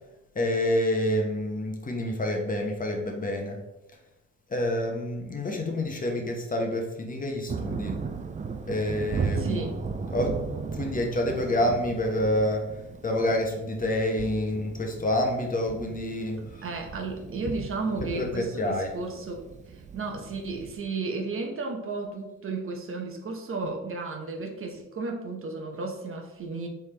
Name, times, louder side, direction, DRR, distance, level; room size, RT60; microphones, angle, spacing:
voice 1, 0.3-3.6 4.5-8.0 8.7-9.6 10.1-12.7 13.0-16.7 18.1-18.9, left 1 dB, 25° left, 2 dB, 0.9 m, -28 dB
Thunder, 7.5-20.8, right 5 dB, 25° right, 0.4 m, -36 dB
voice 2, 9.4-9.8 16.6-26.7, right 3 dB, 45° right, 3 dB, 0.9 m, -33 dB
4.5 x 3.4 x 3.3 m, 0.96 s
cardioid pair, 90°, 30 cm